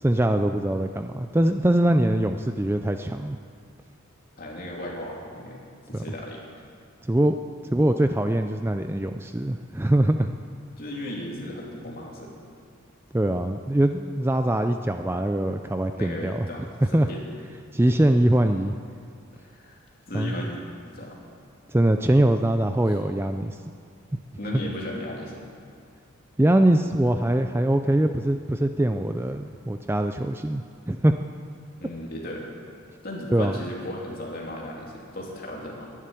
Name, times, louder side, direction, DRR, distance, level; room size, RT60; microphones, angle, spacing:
voice 1, 0.0-3.4 5.9-6.0 7.0-7.3 7.7-10.3 13.1-16.4 16.8-17.1 17.7-18.7 20.1-20.3 21.7-23.6 24.1-24.2 26.4-31.2 33.3-33.5, right 1 dB, 10° right, 7 dB, 0.4 m, -22 dB
voice 2, 4.4-5.6 5.9-6.5 10.8-12.4 15.9-16.6 16.9-17.2 19.3-19.8 20.1-21.2 24.4-25.4 31.8-32.5 33.0-35.9, left 1 dB, 45° left, -2 dB, 2.9 m, -36 dB
11.5 x 11.0 x 10.0 m, 2.3 s
head